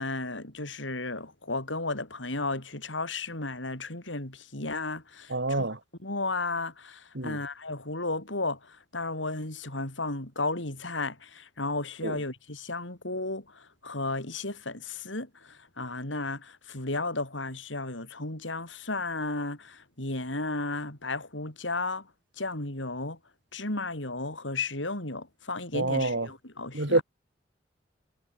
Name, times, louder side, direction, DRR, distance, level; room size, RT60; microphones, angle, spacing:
voice 1, 0.0-5.7 6.0-22.1 22.4-23.2 23.5-27.0, left 2 dB, 80° left, 6.1 m, -34 dB
voice 2, 5.3-5.8 7.2-7.4 12.0-12.2 25.7-26.3 26.7-27.0, right 2 dB, 65° right, 2.3 m, -27 dB
head